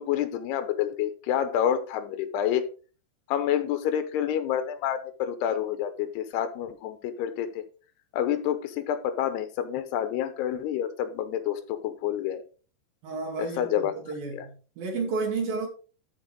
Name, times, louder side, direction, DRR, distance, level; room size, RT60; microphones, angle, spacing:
voice 1, 0.0-2.6 3.3-7.6 8.1-12.4 13.4-13.9 14.3-14.5, left 10 dB, 80° left, 3.0 m, -28 dB
voice 2, 13.0-15.7, right 4 dB, 60° right, 4.0 m, -32 dB
13.5 x 5.3 x 3.8 m
omnidirectional pair, 4.8 m